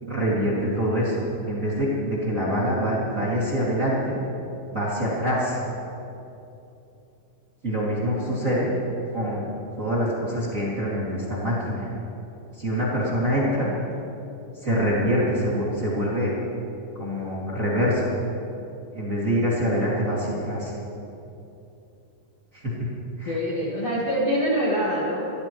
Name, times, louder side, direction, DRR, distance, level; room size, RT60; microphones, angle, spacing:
voice 1, 0.0-4.2 4.7-5.6 7.6-8.7 9.1-9.4 9.8-11.9 12.5-13.7 14.5-16.3 17.0-18.1 18.9-20.7 22.5-22.9 23.2-23.4, equal, 35° right, -7 dB, 1.3 m, -25 dB
voice 2, 23.2-25.2, equal, 75° left, -5 dB, 1.5 m, -24 dB
24.0 x 15.0 x 3.1 m, 2.8 s
omnidirectional pair, 5.7 m